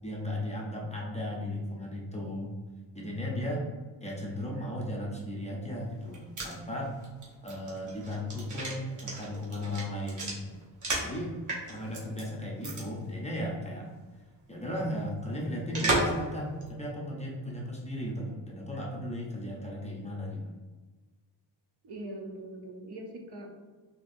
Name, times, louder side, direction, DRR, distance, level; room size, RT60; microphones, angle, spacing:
voice 1, 0.0-2.5 2.9-3.6 4.0-7.0 7.4-10.5 11.0-11.3 11.7-13.9 14.5-20.6, left 1 dB, 15° left, -3 dB, 0.5 m, -36 dB
sound 1, 5.9-11.2 11.5-12.2 12.6-12.8 13.1-13.2 15.7-16.2 16.6-16.7, right 2 dB, 40° right, 1.0 m, -33 dB
voice 2, 21.8-23.5, right 2 dB, 60° right, 2 dB, 0.7 m, -42 dB
4.0 x 2.9 x 2.5 m, 1.3 s
wide cardioid pair, 130°, 45 cm